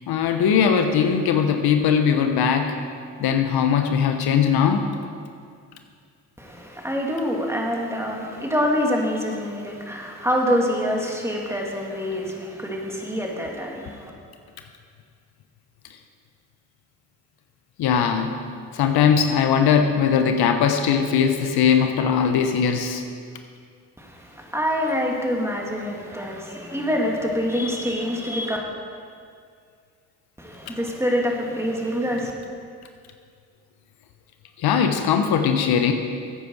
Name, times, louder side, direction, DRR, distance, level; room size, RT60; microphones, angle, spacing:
voice 1, 0.1-2.8 3.2-4.9 17.8-18.3 18.7-23.0 34.6-35.9, left 7 dB, 75° left, 6 dB, 1.0 m, -20 dB
voice 2, 6.4-14.1 24.0-28.6 30.4-32.3, equal, 5° right, -1 dB, 2.7 m, -26 dB
14.0 x 8.8 x 4.8 m, 2.2 s
supercardioid pair, 55°, 38 cm